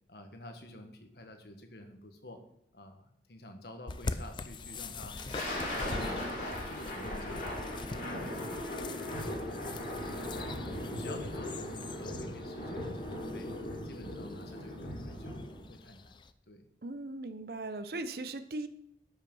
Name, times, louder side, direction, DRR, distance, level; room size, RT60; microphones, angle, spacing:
voice 1, 0.1-2.4 2.7-5.2 5.5-6.3 6.6-8.7 9.1-10.6 11.0-13.5 13.8-16.1 16.5-16.7, left 1 dB, 65° left, 5 dB, 1.5 m, -50 dB
sound 1, 3.9-16.3, left 3 dB, 25° left, 0.4 m, -44 dB
Thunder, 5.1-15.7, left 1 dB, 45° left, 4.6 m, -38 dB
voice 2, 16.8-18.7, right 2 dB, 55° right, 11 dB, 0.7 m, -38 dB
12.5 x 5.8 x 5.5 m, 0.71 s
head